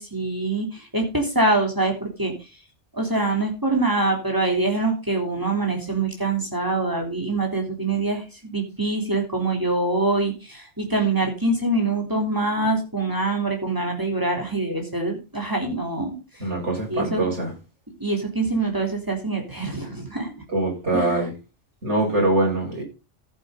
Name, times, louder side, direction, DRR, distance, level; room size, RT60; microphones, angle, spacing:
voice 1, 0.0-2.5 2.9-16.5 16.9-17.2 18.0-20.3 20.9-21.3, right 2 dB, 15° right, 1 dB, 3.7 m, -24 dB
voice 2, 16.4-17.5 20.5-21.3 21.8-22.8, right 2 dB, 70° right, -1 dB, 5.7 m, -23 dB
14.5 x 8.0 x 4.0 m, 0.30 s
omnidirectional pair, 1.2 m